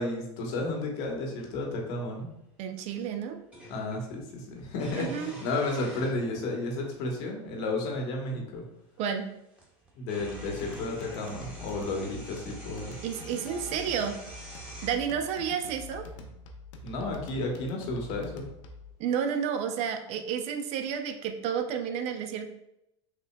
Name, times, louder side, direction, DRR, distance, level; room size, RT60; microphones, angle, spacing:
voice 1, 0.0-2.3 3.7-8.6 9.9-12.9 16.8-18.5, left 2 dB, 60° left, 0 dB, 1.1 m, -32 dB
sound 1, 1.8-1.9 3.5-4.1 4.7-6.6 7.5-7.6 9.1-9.2 9.5-14.9, right 1 dB, 10° right, 1.1 m, -46 dB
voice 2, 2.6-3.4 4.9-5.3 9.0-9.3 13.0-14.2 14.8-16.1 19.0-22.5, right 7 dB, 45° right, 7 dB, 0.4 m, -31 dB
sound 2, 10.2-18.9, left 2 dB, 75° left, 0.6 m, -45 dB
5.9 x 2.1 x 2.2 m, 0.84 s
supercardioid pair, 115°, 16 cm